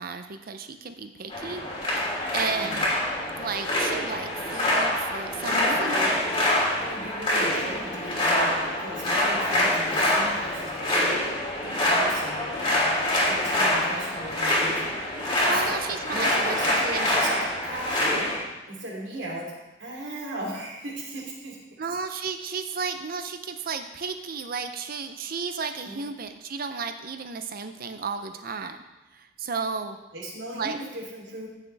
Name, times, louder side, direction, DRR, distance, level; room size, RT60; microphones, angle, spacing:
voice 1, 0.0-1.6 2.3-2.9 3.4-6.2 15.2-17.1 21.8-28.8 29.1-30.0 30.5-30.8, right 5 dB, 50° right, 8 dB, 0.6 m, -33 dB
sound 1, 1.3-18.4, left 1 dB, 25° left, 3.0 m, -25 dB
voice 2, 5.4-6.1 6.8-11.0 11.8-12.5 13.3-14.8 15.4-15.8 16.1-18.2 18.7-19.5 19.8-21.6 25.8-26.0 30.1-31.5, right 1 dB, 75° right, -3 dB, 3.1 m, -37 dB
15.0 x 7.2 x 3.4 m, 1.1 s
head